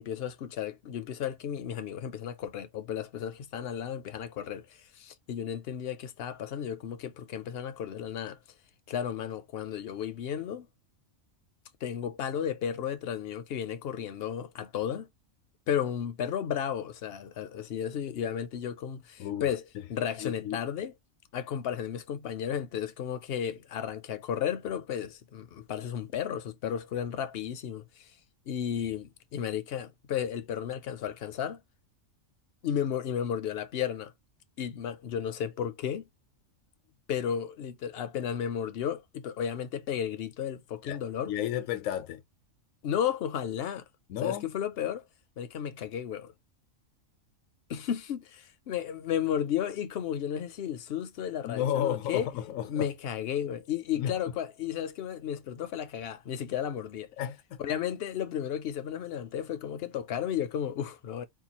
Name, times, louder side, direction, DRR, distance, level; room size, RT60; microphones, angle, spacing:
voice 1, 0.0-8.4 8.9-10.7 11.8-15.1 15.7-19.6 19.9-20.9 21.3-28.1 28.5-31.6 32.6-34.1 34.6-36.1 37.1-41.3 42.8-43.8 44.2-45.0 45.4-46.3 47.7-52.3 52.6-57.1 57.6-61.2, left 9 dB, 60° left, 0.7 m, -33 dB
voice 2, 20.2-20.6 40.8-41.0 41.3-42.2 44.1-44.5 51.4-52.9 54.0-54.1 57.2-57.6, left 10 dB, 75° left, 1.0 m, -32 dB
4.6 x 2.3 x 2.8 m
omnidirectional pair, 1.4 m